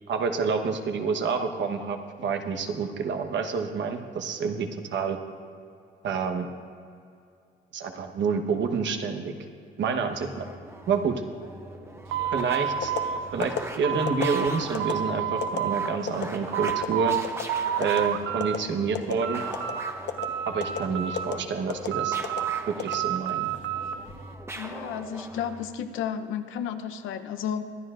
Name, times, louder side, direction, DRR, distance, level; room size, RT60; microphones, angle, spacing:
voice 1, 0.1-5.2 6.0-6.5 7.7-9.3 9.8-10.5 10.9-11.2 12.3-12.9 13.3-17.2 17.8-19.4 20.5-22.2 22.7-23.5, right 5 dB, 65° right, 5 dB, 1.2 m, -28 dB
sound 1, 10.0-25.7, right 1 dB, 15° right, 1.0 m, -41 dB
sound 2, 12.1-14.5 14.8-15.9 16.3-17.2 17.5-18.6 18.9-19.9 20.2-21.4 21.9-24.0, right 10 dB, 80° right, 0.6 m, -30 dB
sound 3, 12.8-13.0 13.4-13.6 14.1-14.3 14.7-14.9 15.4-15.6 16.1-16.3 16.7-16.9 17.2-17.5 17.8-18.0 18.4-18.6 18.9-19.2 19.5-19.7 20.1-20.3 20.6-20.8 21.2-21.3 21.7-21.9 22.2-22.4 22.8-23.4 23.9-24.2, left 8 dB, 60° left, 1.1 m, -30 dB
voice 2, 24.5-27.6, left 8 dB, 90° left, 9 dB, 0.8 m, -32 dB
24.0 x 10.0 x 2.5 m, 2.4 s
cardioid pair, 90°, 20 cm